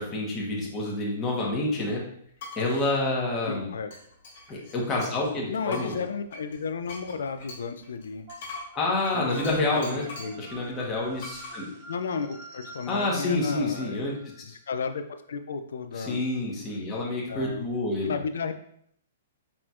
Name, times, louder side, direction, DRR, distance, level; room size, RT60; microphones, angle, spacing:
voice 1, 0.0-2.0 2.6-3.7 4.5-5.9 8.7-10.0 10.4-11.7 12.9-14.1 15.9-18.1, left 2 dB, 25° left, -3 dB, 1.2 m, -28 dB
sound 1, 2.4-2.9 3.9-5.3 5.7-10.4 11.2-11.6, left 3 dB, 60° left, 1.6 m, -43 dB
voice 2, 3.5-3.9 5.5-8.3 9.1-9.3 9.7-10.4 11.9-14.0 14.7-16.2 17.3-17.7 18.0-18.6, left 5 dB, 80° left, 8 dB, 0.3 m, -33 dB
sound 2, 8.3-14.4, right 2 dB, 40° right, 1.5 m, -47 dB
4.3 x 4.1 x 2.5 m, 0.67 s
hypercardioid pair, 130°, 0 cm